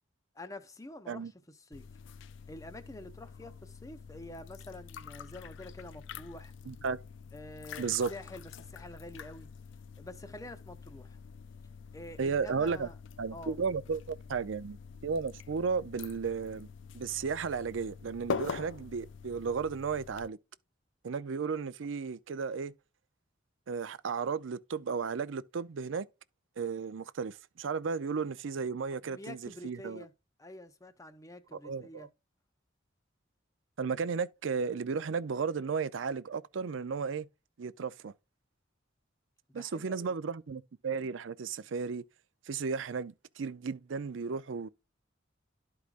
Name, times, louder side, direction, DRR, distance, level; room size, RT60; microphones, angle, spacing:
voice 1, 0.3-1.9 2.5-6.5 7.3-9.5 10.0-11.2 11.9-13.0 13.3-13.6 29.0-30.1 30.4-32.1 39.5-40.1, left 1 dB, 15° left, 0.7 m, -47 dB
sound 1, 1.7-20.3, left 6 dB, 70° left, 0.4 m, -45 dB
voice 2, 6.7-7.0 7.8-8.1 12.2-12.9 13.2-16.7 16.9-20.4 21.0-22.7 23.7-26.1 26.6-30.0 31.6-32.1 33.8-37.3 37.6-38.1 39.5-42.0 42.5-44.7, right 5 dB, 80° right, 0.5 m, -34 dB
13.0 x 4.8 x 2.4 m
head